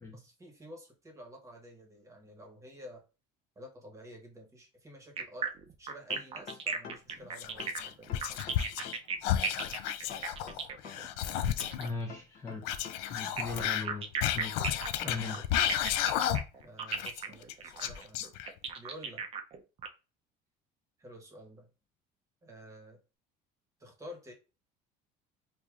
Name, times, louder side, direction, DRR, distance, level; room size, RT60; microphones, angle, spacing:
voice 1, 0.1-3.0 3.5-8.1 16.6-18.2 18.7-19.2 21.0-21.7 22.4-23.0 23.8-24.3, equal, 15° right, 2 dB, 1.1 m, -50 dB
sound 1, 5.2-11.9 13.2-19.9, right 6 dB, 30° right, 0.5 m, -37 dB
sound 2, 6.1-7.2 7.6-9.2 9.6-11.2 11.6-13.2 13.6-13.9, left 7 dB, 50° left, 0.7 m, -47 dB
Whispering, 7.4-9.0 9.2-11.9 12.6-16.6 16.9-18.7, left 11 dB, 85° left, 0.4 m, -32 dB
voice 2, 11.8-12.6 13.1-14.1 14.3-14.7 15.0-15.4, left 3 dB, 15° left, -1 dB, 0.7 m, -38 dB
4.7 x 2.7 x 2.4 m, 0.31 s
cardioid pair, 135°, 18 cm